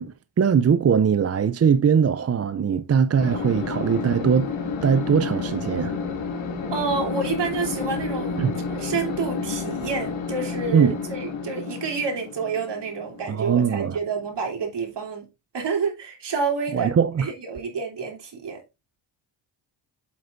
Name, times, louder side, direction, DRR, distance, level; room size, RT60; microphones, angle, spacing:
voice 1, 0.0-4.5 4.8-6.0 8.4-8.5 10.7-11.0 13.3-14.0 16.7-17.3, right 7 dB, 35° right, 0.6 m, -21 dB
sound 1, 3.2-14.3, left 5 dB, 85° left, 2.2 m, -30 dB
voice 2, 6.7-8.4 8.7-15.3 15.5-18.6, right 5 dB, 60° right, 3.3 m, -29 dB
8.0 x 7.7 x 2.6 m
supercardioid pair, 60°, 47 cm